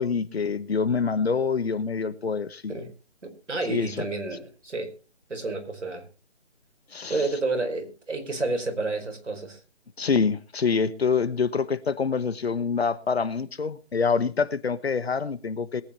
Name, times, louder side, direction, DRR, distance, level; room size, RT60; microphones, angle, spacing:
voice 1, 0.0-2.7 3.7-4.1 6.9-7.2 10.0-15.8, left 5 dB, 60° left, 1.3 m, -26 dB
voice 2, 3.2-4.9 5.3-6.0 7.1-9.6, right 3 dB, 85° right, 4.9 m, -30 dB
22.0 x 9.6 x 3.1 m
figure-of-eight pair, 165°, 35 cm